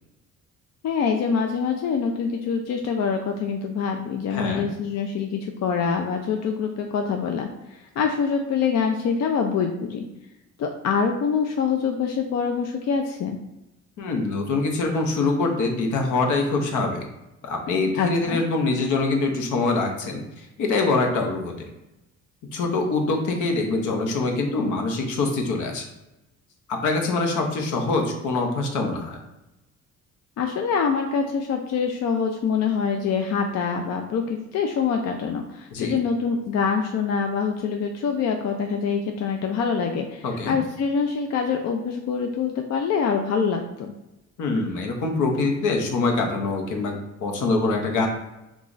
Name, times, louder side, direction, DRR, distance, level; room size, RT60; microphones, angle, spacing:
voice 1, 0.8-10.0 10.6-13.4 17.9-18.4 30.4-43.9, left 6 dB, 60° left, 3 dB, 0.4 m, -25 dB
voice 2, 4.3-4.6 14.0-17.1 17.4-21.5 22.5-25.9 26.7-29.2 35.7-36.0 40.2-40.6 44.4-48.1, left 3 dB, 80° left, 3 dB, 0.8 m, -24 dB
3.0 x 2.4 x 3.8 m, 0.95 s
cardioid pair, 90°, 30 cm